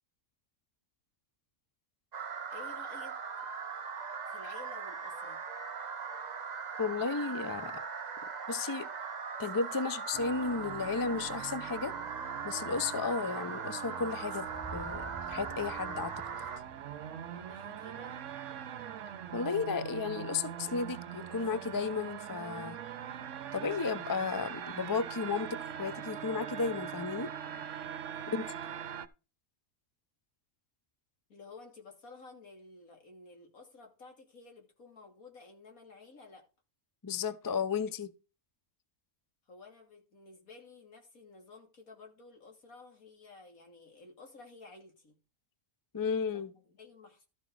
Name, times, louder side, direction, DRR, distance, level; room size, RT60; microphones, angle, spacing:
sound 1, 2.1-16.6, right 5 dB, 40° right, 0.8 m, -40 dB
voice 1, 2.5-3.2 4.3-5.4 17.3-18.2 28.2-29.0 31.3-36.4 39.5-45.2 46.3-47.3, left 3 dB, 75° left, 3.1 m, -53 dB
voice 2, 6.8-7.8 8.5-8.9 9.4-11.9 12.4-14.5 14.7-16.1 19.3-22.8 23.5-27.3 28.3-28.5 37.0-38.1 45.9-46.5, left 5 dB, 30° left, 0.4 m, -33 dB
sound 2, 10.1-29.1, right 9 dB, 65° right, 1.0 m, -43 dB
sound 3, 14.4-18.5, right 3 dB, 5° right, 1.5 m, -51 dB
13.0 x 6.0 x 4.7 m
omnidirectional pair, 1.5 m